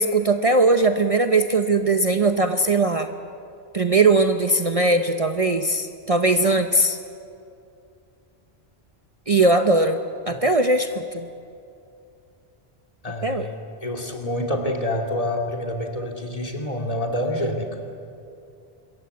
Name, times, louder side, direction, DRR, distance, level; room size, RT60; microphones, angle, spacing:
voice 1, 0.0-3.1 3.7-7.0 9.3-11.3 13.2-13.5, right 2 dB, 35° right, 6 dB, 0.9 m, -20 dB
voice 2, 13.0-17.7, left 1 dB, 35° left, 1 dB, 2.9 m, -27 dB
26.0 x 22.5 x 8.3 m, 2.6 s
omnidirectional pair, 1.1 m